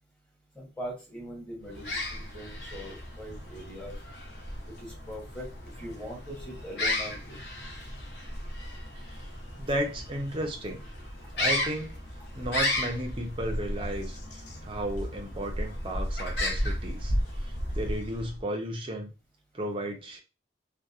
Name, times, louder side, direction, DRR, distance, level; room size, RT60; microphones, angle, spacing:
voice 1, 0.5-4.0 4.6-5.5 5.8-7.4 12.2-12.3, equal, 5° left, -3 dB, 0.8 m, -41 dB
sound 1, 1.7-18.4, left 1 dB, 55° left, 0.6 m, -34 dB
voice 2, 8.9-9.3 9.6-10.8 11.3-11.9 12.3-19.1 19.5-20.2, right 1 dB, 25° right, 3 dB, 0.4 m, -34 dB
2.7 x 2.0 x 2.3 m, 0.30 s
head